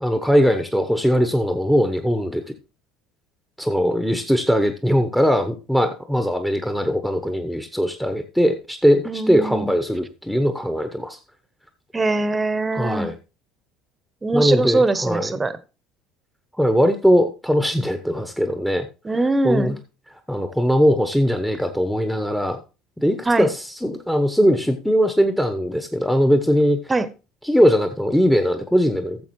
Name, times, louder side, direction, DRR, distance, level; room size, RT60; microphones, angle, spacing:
voice 1, 0.0-2.4 3.6-11.2 12.7-13.1 14.3-15.3 16.5-18.9 19.4-19.8 20.3-22.6 23.0-26.8 27.4-29.2, equal, ahead, 8 dB, 1.0 m, -20 dB
voice 2, 9.0-9.7 11.9-13.1 14.2-15.5 19.0-19.8 23.3-23.5 26.9-27.1, right 2 dB, 20° right, 15 dB, 0.9 m, -22 dB
14.5 x 7.1 x 3.1 m, 0.32 s
figure-of-eight pair, 65°, 0 cm